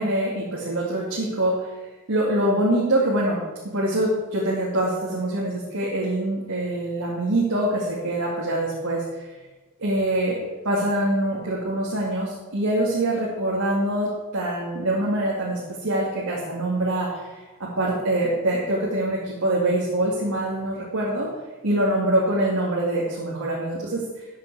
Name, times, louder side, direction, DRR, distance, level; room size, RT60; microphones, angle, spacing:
voice 1, 0.0-1.7 2.1-3.4 3.7-9.3 9.8-21.3 21.6-24.0, right 1 dB, 90° right, -5 dB, 2.3 m, -24 dB
13.5 x 7.7 x 4.8 m, 1.2 s
head